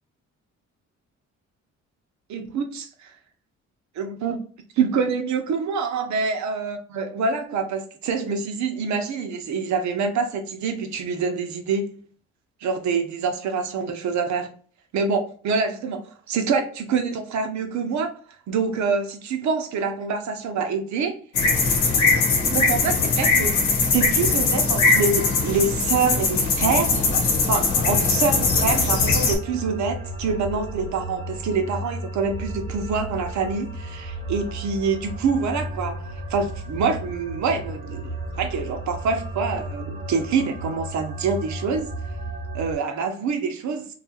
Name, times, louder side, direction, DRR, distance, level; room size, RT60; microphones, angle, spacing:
voice 1, 2.3-3.1 4.0-4.4 4.8-12.0 12.6-14.5 14.9-18.1 18.5-21.2 22.5-23.5 23.9-27.1 27.5-41.9 42.5-43.9, right 5 dB, 65° right, 0.7 m, -26 dB
sound 1, 21.3-29.3, left 4 dB, 80° left, 1.0 m, -21 dB
sound 2, 27.8-42.7, right 1 dB, 20° right, 0.8 m, -34 dB
2.8 x 2.4 x 2.8 m
cardioid pair, 90°, 30 cm